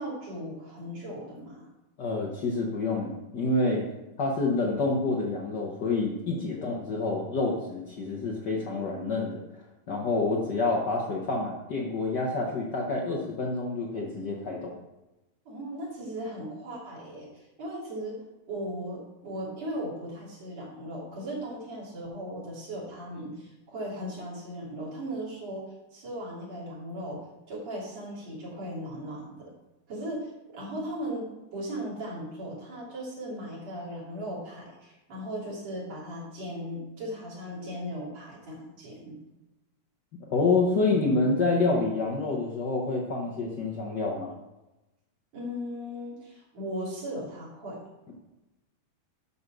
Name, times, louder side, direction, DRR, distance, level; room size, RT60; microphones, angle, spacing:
voice 1, 0.0-1.7 6.4-6.7 15.5-18.2 18.5-25.6 25.9-29.5 29.9-31.3 31.5-39.2 40.7-40.8 45.3-47.8, equal, 60° right, -6 dB, 4.1 m, -37 dB
voice 2, 2.0-3.8 4.2-14.8 40.3-44.3, left 3 dB, 65° left, -2 dB, 1.0 m, -28 dB
12.0 x 4.2 x 6.1 m, 1.0 s
omnidirectional pair, 3.5 m